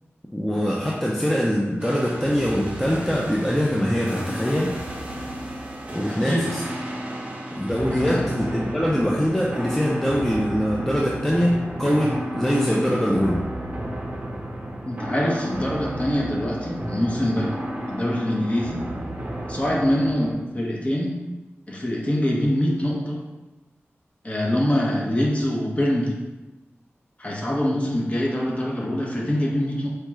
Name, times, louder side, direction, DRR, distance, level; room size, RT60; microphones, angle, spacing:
voice 1, 0.3-4.8 5.9-6.6 7.6-13.4 27.7-27.8, equal, 10° left, -4 dB, 0.4 m, -23 dB
sound 1, 1.8-20.3, right 1 dB, 30° right, 0.8 m, -33 dB
voice 2, 6.1-6.4 7.9-8.3 14.9-17.5 17.9-18.8 19.5-21.1 21.7-23.2 24.2-26.2 27.2-29.9, left 1 dB, 30° left, -3 dB, 0.7 m, -24 dB
4.4 x 2.3 x 3.1 m, 1.1 s
wide cardioid pair, 80°, 5 cm